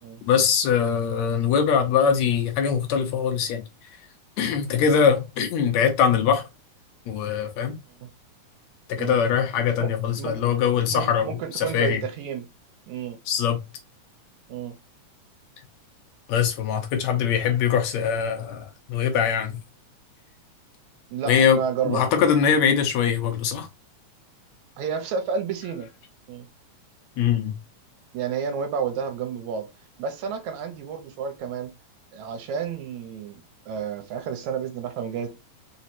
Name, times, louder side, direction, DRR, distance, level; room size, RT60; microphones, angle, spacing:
voice 1, 0.3-3.6 4.4-6.4 7.1-7.8 8.9-12.0 13.3-13.6 16.3-19.6 21.3-23.7 27.2-27.6, left 7 dB, 70° left, 2.0 m, -22 dB
voice 2, 10.9-12.5 12.9-13.2 14.5-14.8 21.1-22.0 24.8-25.9 26.3-26.5 28.1-29.7 30.0-31.7 32.1-35.3, right 7 dB, 75° right, 2.1 m, -31 dB
5.1 x 3.1 x 2.8 m
omnidirectional pair, 3.4 m